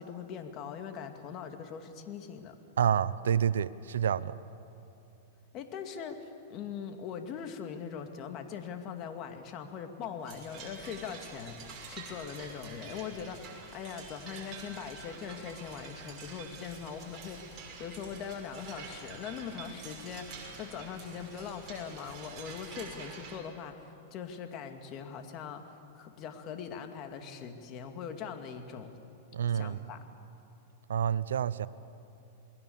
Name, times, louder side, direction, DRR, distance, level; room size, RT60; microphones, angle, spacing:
voice 1, 0.0-2.6 5.5-28.9 29.5-30.0, left 7 dB, 40° left, 6 dB, 2.4 m, -41 dB
voice 2, 2.8-4.4 29.3-29.8 30.9-31.7, right 9 dB, 85° right, 16 dB, 0.8 m, -28 dB
sound 1, 10.2-23.4, right 5 dB, 35° right, 6.0 m, -47 dB
28.0 x 21.0 x 7.2 m, 2.9 s
hypercardioid pair, 130°, 0 cm